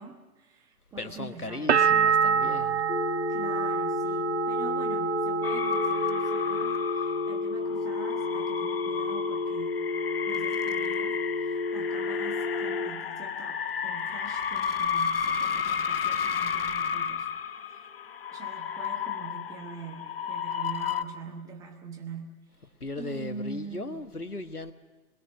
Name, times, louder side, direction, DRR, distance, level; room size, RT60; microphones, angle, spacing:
voice 1, 0.0-2.1 3.3-9.8 10.2-17.9 18.3-22.7 22.9-24.1, right 5 dB, 10° right, 4 dB, 1.1 m, -44 dB
voice 2, 1.0-2.8 22.8-24.7, left 2 dB, 85° left, 10 dB, 1.6 m, -37 dB
sound 1, 1.7-7.3 7.6-8.4, right 7 dB, 50° right, 0.6 m, -27 dB
sound 2, 2.9-12.9, left 4 dB, 55° left, 1.3 m, -31 dB
sound 3, 5.4-21.0, left 7 dB, 40° left, 0.8 m, -32 dB
23.5 x 21.5 x 6.3 m, 1.2 s
figure-of-eight pair, 130°, 44 cm